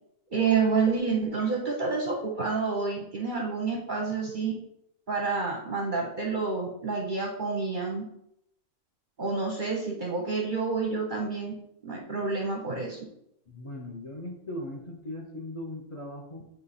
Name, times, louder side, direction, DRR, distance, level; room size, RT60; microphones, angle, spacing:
voice 1, 0.3-4.5 5.1-8.0 9.2-11.5 11.8-13.0, right 4 dB, 45° right, 0 dB, 0.7 m, -28 dB
voice 2, 13.5-16.4, left 1 dB, 30° left, 0 dB, 0.6 m, -39 dB
7.7 x 3.0 x 4.2 m, 0.77 s
omnidirectional pair, 1.6 m